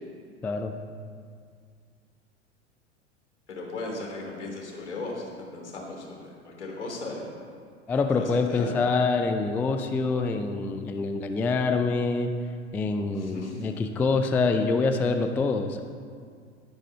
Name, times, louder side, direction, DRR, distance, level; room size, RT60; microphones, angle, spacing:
voice 1, 0.4-0.7 7.9-12.3 12.7-15.8, left 4 dB, 5° left, 6 dB, 0.3 m, -25 dB
voice 2, 3.5-7.3 8.2-8.8 13.2-13.6, left 2 dB, 70° left, -1 dB, 3.3 m, -37 dB
12.5 x 10.5 x 5.5 m, 2.1 s
figure-of-eight pair, 85°, 36 cm